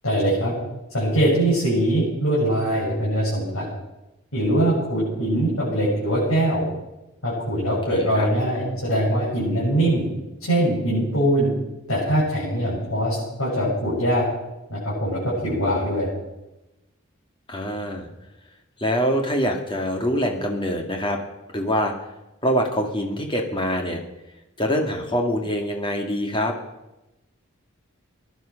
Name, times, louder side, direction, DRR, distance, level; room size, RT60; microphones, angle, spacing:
voice 1, 0.0-0.5 0.9-3.6 4.3-6.6 7.2-10.1 10.5-11.5 11.9-14.2 14.7-16.1, right 1 dB, 75° left, -8 dB, 7.8 m, -22 dB
voice 2, 7.9-8.3 17.5-18.1 18.8-21.2 21.5-21.9 22.4-24.0 24.6-26.5, equal, 20° left, 3 dB, 2.0 m, -24 dB
19.0 x 11.0 x 6.4 m, 0.99 s
head